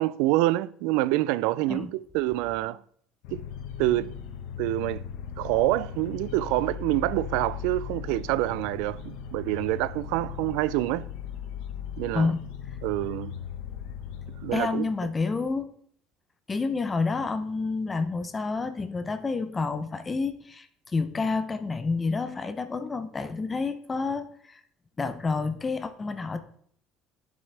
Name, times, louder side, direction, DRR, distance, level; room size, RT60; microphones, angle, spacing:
voice 1, 0.0-2.8 3.3-3.4 3.8-4.1 4.6-5.0 5.4-11.1 12.0-12.3 12.8-13.4 14.4-14.9, right 17 dB, 80° right, 0.3 m, -26 dB
sound 1, 3.2-14.6, left 8 dB, 75° left, 1.1 m, -38 dB
voice 2, 12.1-12.4 14.5-15.7 16.5-20.7 20.9-24.6 25.0-26.4, left 4 dB, 15° left, 0.6 m, -29 dB
11.5 x 7.5 x 3.3 m
cardioid pair, 165°, 0 cm